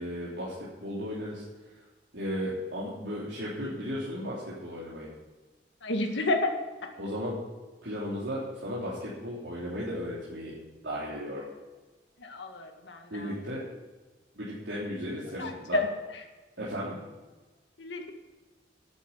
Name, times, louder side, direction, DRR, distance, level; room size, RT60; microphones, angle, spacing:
voice 1, 0.0-1.4 2.1-5.1 7.0-7.3 7.8-10.5 10.8-11.4 13.1-13.6 14.3-15.8 16.6-17.0, equal, 85° right, -8 dB, 3.6 m, -35 dB
voice 2, 5.8-6.5 12.2-13.0 15.4-15.9 17.8-18.1, left 2 dB, 90° left, 4 dB, 1.9 m, -30 dB
11.0 x 9.3 x 8.4 m, 1.2 s
head